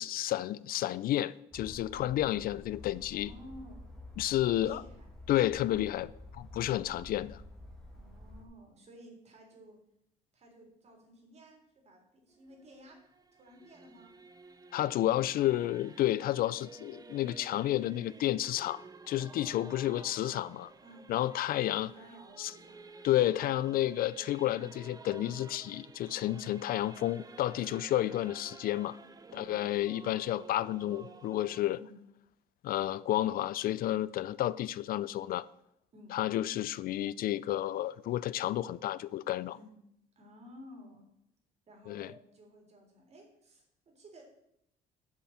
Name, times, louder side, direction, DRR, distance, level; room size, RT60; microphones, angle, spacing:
voice 1, 0.0-3.3 4.2-4.8 5.3-7.4 14.7-20.7 21.1-21.9 22.4-22.5 23.0-29.0 29.4-31.8 32.6-35.5 36.1-39.6 41.9-42.1, left 13 dB, 60° left, 0.4 m, -31 dB
sound 1, 1.5-8.4, left 1 dB, 5° left, 2.4 m, -50 dB
voice 2, 3.1-3.8 4.4-5.1 7.9-9.8 10.3-13.0 13.3-14.1 20.8-21.1 21.6-22.8 26.3-26.6 27.6-27.9 29.3-29.6 31.7-32.0 35.9-36.2 39.5-39.7 40.2-41.0 41.7-44.2, equal, 40° right, 3.9 m, -54 dB
Singing / Musical instrument, 12.3-31.7, right 4 dB, 20° right, 0.8 m, -52 dB
7.4 x 7.1 x 7.5 m
cardioid pair, 110°, 17 cm